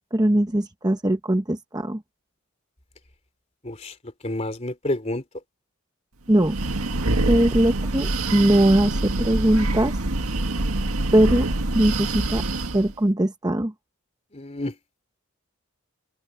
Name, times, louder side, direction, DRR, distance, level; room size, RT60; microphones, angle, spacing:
voice 1, 0.1-2.0 6.3-6.6 7.3-9.9 11.1-11.5 11.7-12.4 12.7-13.7, right 1 dB, 15° right, 0.9 m, -20 dB
voice 2, 3.6-3.9 4.2-5.2 14.3-14.8, left 1 dB, 30° left, 3.0 m, -29 dB
Breathing, 6.3-12.9, right 2 dB, 85° right, 1.8 m, -25 dB
open air
head